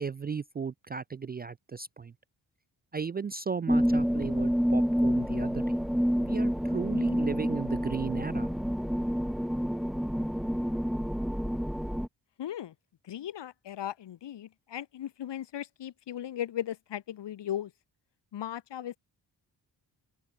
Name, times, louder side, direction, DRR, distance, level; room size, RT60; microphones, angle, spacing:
voice 1, 0.0-2.1 2.9-5.8 6.2-8.5, right 5 dB, 25° right, 0.3 m, -35 dB
sound 1, 3.7-12.1, equal, ahead, 1.0 m, -28 dB
voice 2, 12.4-12.7 13.0-17.7 18.3-19.0, left 11 dB, 65° left, 1.2 m, -37 dB
supercardioid pair, 55°, 45 cm